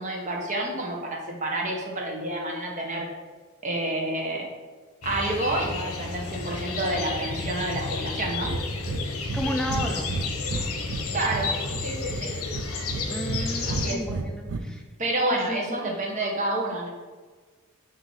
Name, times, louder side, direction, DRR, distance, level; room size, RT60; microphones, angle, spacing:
voice 1, 0.0-3.1 3.6-4.5 5.0-8.5 11.1-12.3 13.7-14.0 15.0-16.9, right 1 dB, 35° right, 0 dB, 1.0 m, -29 dB
sound 1, 5.0-13.9, left 3 dB, 75° left, 0.8 m, -32 dB
Breathing, 8.4-8.6 8.9-9.0 9.3-9.4 9.7-11.0 11.3-12.2 12.5-13.4 13.7-14.6, right 3 dB, 75° right, 0.5 m, -31 dB
voice 2, 9.3-10.1 13.1-14.8 15.3-15.9, equal, 5° left, 1 dB, 0.5 m, -32 dB
6.0 x 2.8 x 5.5 m, 1.4 s
head